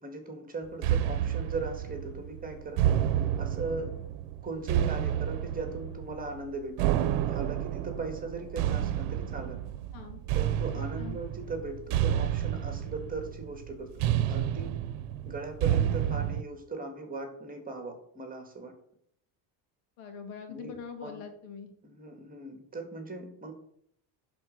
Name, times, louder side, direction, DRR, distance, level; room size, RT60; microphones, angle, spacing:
voice 1, 0.0-2.8 3.4-3.9 4.4-6.9 7.2-9.6 10.3-14.7 15.2-18.7 20.5-21.2 21.8-23.5, right 3 dB, 15° right, 5 dB, 1.8 m, -39 dB
sound 1, 0.8-16.4, right 11 dB, 80° right, 0.9 m, -30 dB
voice 2, 20.0-21.7, left 6 dB, 80° left, 5 dB, 2.3 m, -43 dB
10.5 x 4.3 x 6.5 m, 0.68 s
cardioid pair, 140°, 49 cm